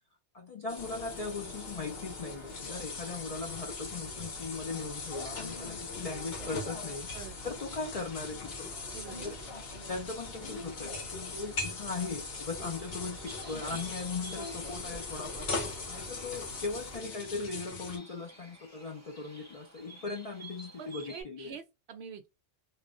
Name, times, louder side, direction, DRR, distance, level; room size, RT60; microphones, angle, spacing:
voice 1, 0.3-7.1 7.4-8.7 9.2-9.3 9.9-15.5 15.9-21.6, left 4 dB, 60° left, 0.4 m, -39 dB
sound 1, 0.7-18.0, left 4 dB, 85° left, 1.2 m, -41 dB
sound 2, 0.8-17.0, left 1 dB, 35° left, 1.1 m, -47 dB
voice 2, 7.1-7.5 8.9-9.3 20.8-22.3, right 7 dB, 65° right, 0.8 m, -46 dB
Bird, 13.3-21.2, right 2 dB, 15° right, 0.7 m, -52 dB
3.0 x 2.0 x 2.4 m
omnidirectional pair, 1.2 m